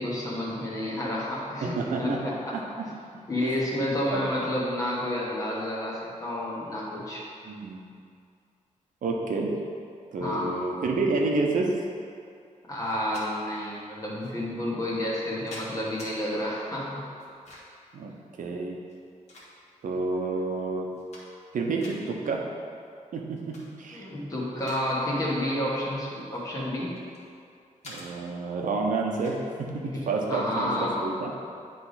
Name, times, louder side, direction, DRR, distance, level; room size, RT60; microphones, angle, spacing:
voice 1, 0.0-2.5 3.3-7.2 10.2-10.5 12.7-17.1 23.9-27.0 30.3-31.0, left 1 dB, 25° left, -6 dB, 1.4 m, -30 dB
voice 2, 1.6-2.6 3.4-3.5 4.1-4.2 7.4-7.8 9.0-9.5 10.1-11.7 17.9-18.1 18.4-18.8 19.8-20.9 21.5-22.4 23.1-24.1 27.8-31.3, right 3 dB, 85° right, 0 dB, 0.9 m, -29 dB
sound 1, 12.8-13.3 14.2-14.3 15.1-16.1 17.2-17.8 18.8-19.9 20.4-20.5 20.8-21.5 21.8-22.0 23.3-23.7 24.1-24.9 25.2-25.4 26.2-27.3 27.8-28.1 29.2-29.4, left 1 dB, 55° left, 1.5 m, -46 dB
10.0 x 3.4 x 4.1 m, 2.4 s
wide cardioid pair, 165°, 13 cm